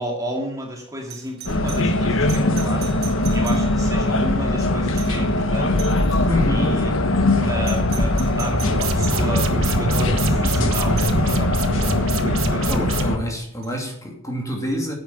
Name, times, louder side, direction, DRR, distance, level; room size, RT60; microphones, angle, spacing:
voice 1, 0.0-5.7 6.5-7.0 7.4-12.7, right 1 dB, 15° right, 0 dB, 2.2 m, -32 dB
Doorbell, 1.1-4.1 4.9-5.3 5.8-6.3 7.6-9.3 11.0-11.2 13.6-13.7, right 11 dB, 50° right, 1.4 m, -39 dB
sound 1, 1.5-13.2, left 1 dB, 70° left, 1.2 m, -21 dB
voice 2, 6.3-6.8 12.7-14.9, left 1 dB, 15° left, 0 dB, 2.7 m, -26 dB
sound 2, 8.7-13.0, right 3 dB, 80° right, 1.4 m, -27 dB
10.5 x 8.8 x 6.9 m, 0.67 s
head